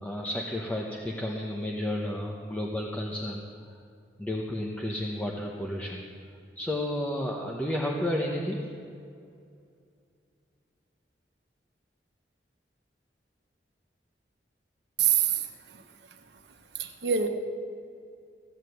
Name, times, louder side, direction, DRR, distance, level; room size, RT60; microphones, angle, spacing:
voice 1, 0.0-3.4 4.2-6.0 6.6-8.6, left 1 dB, 10° left, -2 dB, 1.0 m, -32 dB
voice 2, 15.0-15.3 16.8-17.3, right 9 dB, 75° right, 6 dB, 1.1 m, -24 dB
15.0 x 9.0 x 7.8 m, 2.4 s
head